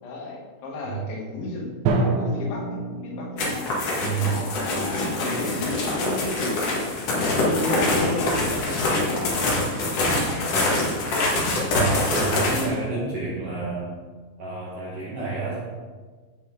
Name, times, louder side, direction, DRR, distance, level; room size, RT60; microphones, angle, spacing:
voice 1, 0.0-3.7 4.2-6.3 6.7-10.5 11.0-11.4, left 2 dB, 80° left, -3 dB, 4.3 m, -33 dB
Drum, 1.9-3.8, right 3 dB, 80° right, 3.4 m, -26 dB
sound 1, 3.4-12.7, left 2 dB, 55° left, 2.9 m, -24 dB
voice 2, 4.0-4.4 11.7-13.9 14.4-15.6, right 4 dB, 60° right, -7 dB, 1.6 m, -29 dB
15.0 x 5.8 x 3.9 m, 1.4 s
omnidirectional pair, 5.2 m